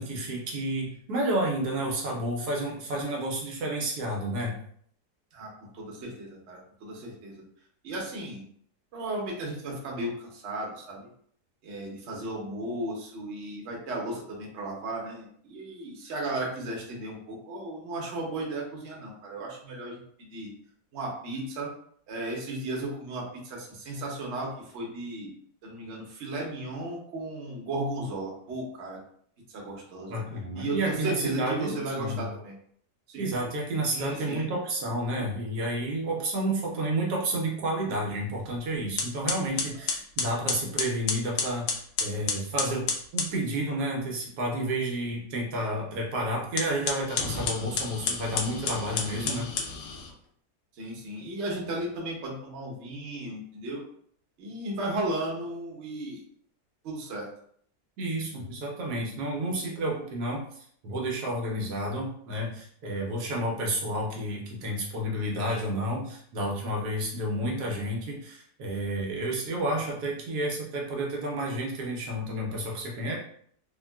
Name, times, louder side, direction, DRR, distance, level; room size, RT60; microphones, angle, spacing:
voice 1, 0.0-4.6 30.1-32.3 33.2-41.7 42.0-49.5 58.0-60.4 60.8-73.2, right 1 dB, 75° right, -1 dB, 1.2 m, -30 dB
voice 2, 5.3-7.4 7.8-8.4 8.9-11.1 11.6-20.5 20.9-21.7 22.1-25.3 25.6-29.0 29.5-30.2 30.5-32.6 33.1-34.5 39.7-39.8 49.1-49.4 50.8-53.8 54.4-56.2 56.8-57.3, right 1 dB, 55° right, -1 dB, 0.9 m, -35 dB
sound 1, 38.4-38.6 39.0-43.4 46.4-50.1, left 5 dB, 85° left, 1.2 m, -31 dB
3.5 x 2.2 x 2.2 m, 0.62 s
omnidirectional pair, 1.7 m